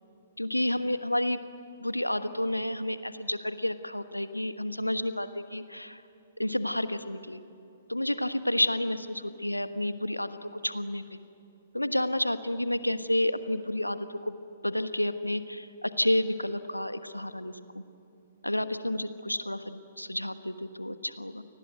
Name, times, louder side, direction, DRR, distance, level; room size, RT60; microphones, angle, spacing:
voice 1, 0.4-1.4 1.8-6.0 6.4-7.4 7.9-11.2 11.7-14.4 14.6-17.8 18.4-21.4, left 1 dB, 85° left, 11 dB, 1.3 m, -30 dB
29.0 x 20.0 x 9.2 m, 2.8 s
figure-of-eight pair, 120°, 0 cm